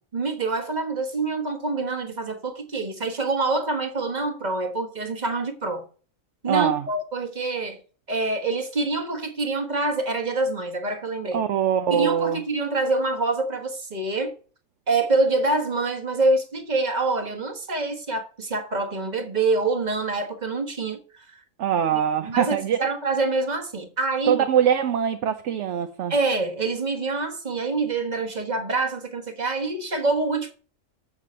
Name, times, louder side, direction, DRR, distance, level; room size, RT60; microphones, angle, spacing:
voice 1, 0.1-5.8 6.4-7.8 8.1-11.4 11.9-14.3 14.9-21.4 22.2-24.4 26.1-30.5, right 3 dB, 35° right, 1.4 m, -26 dB
voice 2, 6.5-6.9 11.3-12.4 21.6-22.9 24.3-26.1, right 9 dB, 65° right, 1.0 m, -23 dB
7.3 x 6.8 x 6.2 m
omnidirectional pair, 1.4 m